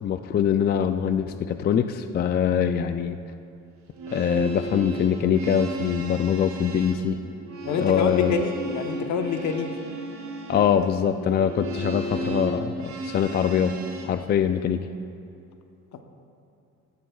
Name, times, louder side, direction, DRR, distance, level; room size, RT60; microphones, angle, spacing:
voice 1, 0.0-3.2 4.1-7.2 7.8-8.3 10.5-13.8 14.0-14.9, left 8 dB, 35° left, 9 dB, 0.4 m, -23 dB
sound 1, 3.8-14.1, right 2 dB, 70° right, 2.1 m, -34 dB
voice 2, 7.6-9.7 15.9-16.0, left 6 dB, 70° left, 6 dB, 1.0 m, -27 dB
16.5 x 13.5 x 2.3 m, 2.6 s
cardioid pair, 115°, 30 cm